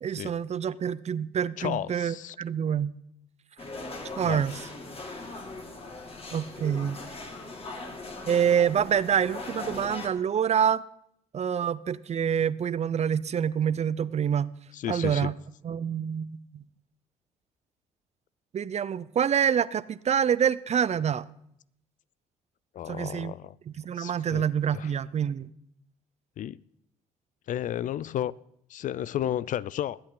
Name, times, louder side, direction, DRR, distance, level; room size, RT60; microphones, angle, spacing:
voice 1, 0.0-2.9 4.2-4.6 6.3-7.0 8.3-10.8 11.3-14.5 14.9-15.3 15.6-16.6 18.5-21.3 22.9-23.3 23.7-25.5, right 8 dB, 45° right, 0.6 m, -26 dB
voice 2, 1.6-2.4 4.2-4.4 14.7-15.3 22.7-23.5 24.0-24.4 24.7-24.9 26.4-26.6 27.5-28.3 28.7-30.0, left 11 dB, 55° left, 0.4 m, -32 dB
sound 1, 3.6-10.1, left 2 dB, 40° left, 2.4 m, -40 dB
21.5 x 8.9 x 3.9 m
hypercardioid pair, 55°, 16 cm